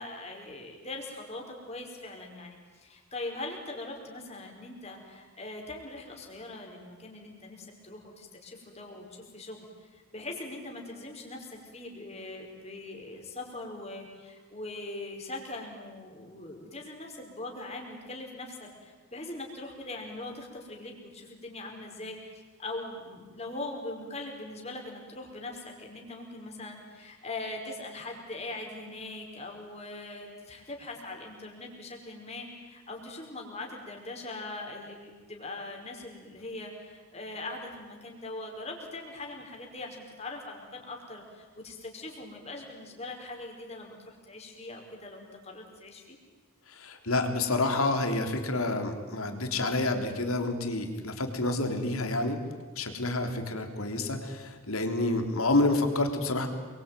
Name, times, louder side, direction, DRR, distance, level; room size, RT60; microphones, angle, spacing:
voice 1, 0.0-46.2, left 2 dB, 30° left, 1 dB, 5.1 m, -41 dB
voice 2, 46.7-52.4 52.8-56.5, left 2 dB, 85° left, 6 dB, 3.5 m, -28 dB
28.5 x 23.0 x 9.2 m, 1.4 s
head